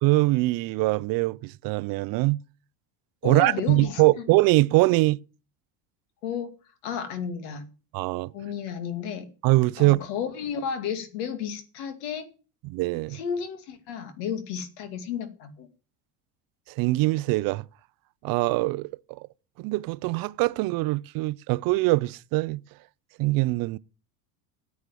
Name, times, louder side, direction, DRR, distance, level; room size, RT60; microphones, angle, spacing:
voice 1, 0.0-2.4 3.2-5.2 7.9-8.3 9.4-10.1 12.6-13.2 16.8-17.6 18.2-18.9 19.6-22.6 23.2-23.8, right 21 dB, 50° right, 0.5 m, -23 dB
voice 2, 3.2-4.2 6.2-6.5 6.8-7.6 8.3-9.3 9.8-12.3 13.1-15.7, left 7 dB, 90° left, 2.4 m, -32 dB
9.7 x 8.4 x 7.5 m
cardioid pair, 155°, 44 cm